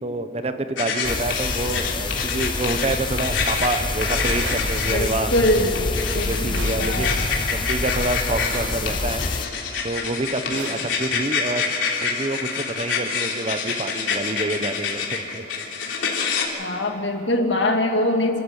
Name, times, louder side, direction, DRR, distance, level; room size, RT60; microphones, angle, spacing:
voice 1, 0.0-5.3 6.1-7.2 7.5-9.2 9.8-15.5 15.9-16.0, right 2 dB, 30° right, 9 dB, 0.9 m, -27 dB
sound 1, 0.8-16.4, left 5 dB, 85° left, 3.5 m, -27 dB
sound 2, 1.0-9.5, left 3 dB, 25° left, 0.6 m, -27 dB
sound 3, 4.4-5.2 6.5-7.4 8.5-9.3 10.5-11.4, right 3 dB, 75° right, 1.2 m, -38 dB
voice 2, 4.9-7.2 16.6-18.4, left 1 dB, 70° left, 4 dB, 2.2 m, -23 dB
30.0 x 13.5 x 8.2 m, 2.9 s
head